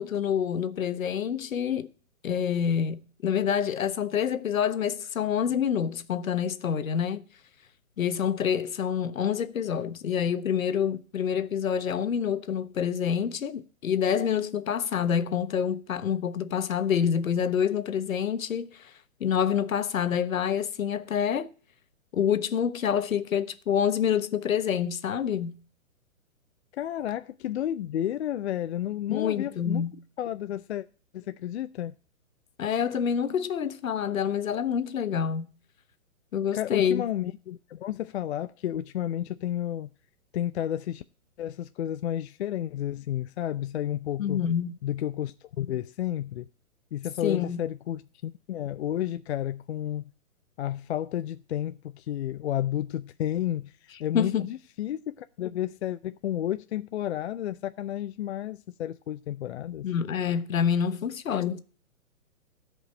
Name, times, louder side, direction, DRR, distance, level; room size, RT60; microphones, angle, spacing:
voice 1, 0.0-1.9 2.2-7.3 8.0-18.9 19.2-21.5 22.1-25.5 29.1-29.9 32.6-35.5 36.3-37.0 44.2-44.7 47.2-47.6 54.1-54.5 59.8-61.6, left 8 dB, 75° left, 1.3 m, -27 dB
voice 2, 26.7-29.8 30.2-30.8 31.1-31.9 36.5-39.9 40.3-41.0 41.4-44.4 44.8-46.5 46.9-50.0 50.6-59.9, left 11 dB, 50° left, 0.5 m, -31 dB
14.0 x 5.2 x 8.7 m
hypercardioid pair, 140°, 42 cm